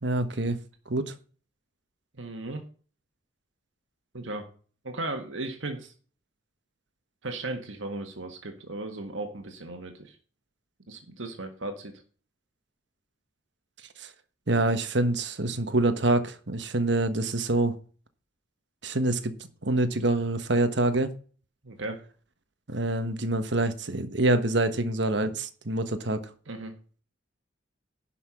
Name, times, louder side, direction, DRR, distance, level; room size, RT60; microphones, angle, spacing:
voice 1, 0.0-0.6 0.9-1.1 14.0-14.1 14.5-17.8 18.8-19.3 19.6-21.1 22.7-26.2, right 2 dB, 60° right, 1.3 m, -26 dB
voice 2, 2.2-2.6 4.1-4.5 4.8-5.9 7.2-10.2 10.9-11.9 21.6-22.0 26.5-26.7, right 2 dB, 80° right, 1.7 m, -36 dB
11.0 x 5.9 x 5.7 m
head